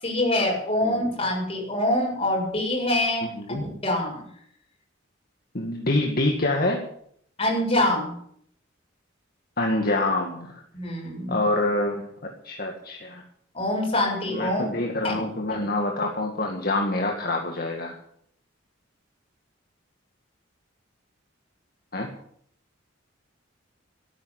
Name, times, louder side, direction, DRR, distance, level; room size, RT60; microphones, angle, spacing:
voice 1, 0.0-3.3 3.8-4.2 7.4-8.1 10.7-11.4 13.5-14.6, left 1 dB, 30° left, -1 dB, 7.5 m, -24 dB
voice 2, 3.2-3.7 5.5-6.8 9.6-10.6 11.3-13.2 14.3-17.9 21.9-22.1, left 2 dB, 50° left, 2 dB, 2.1 m, -26 dB
13.5 x 11.5 x 8.9 m, 0.67 s
head